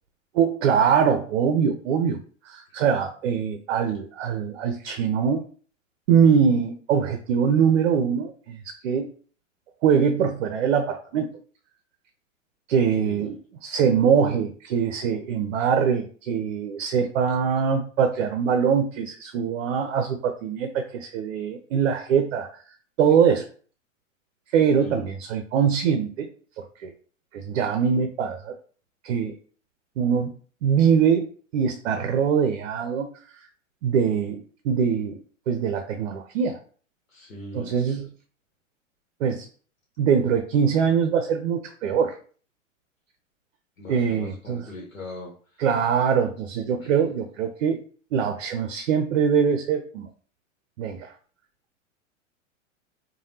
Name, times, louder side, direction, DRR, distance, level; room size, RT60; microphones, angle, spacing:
voice 1, 0.3-2.2 2.5-5.4 6.1-9.1 9.8-11.3 12.7-13.4 13.6-22.5 23.0-23.4 24.5-26.3 26.6-26.9 27.3-28.5 29.0-29.3 30.0-30.3 30.6-31.3 31.5-33.1 33.8-36.6 37.5-38.1 39.2-39.5 40.0-42.2 43.9-44.7 45.6-47.8 48.1-50.1 50.8-51.1, right 7 dB, 60° right, 6 dB, 0.6 m, -23 dB
voice 2, 13.0-13.3 24.8-25.0 37.1-37.7 43.8-45.6 46.8-47.0, left 2 dB, 90° left, -2 dB, 1.0 m, -40 dB
3.2 x 2.2 x 2.7 m, 0.43 s
hypercardioid pair, 105°, 39 cm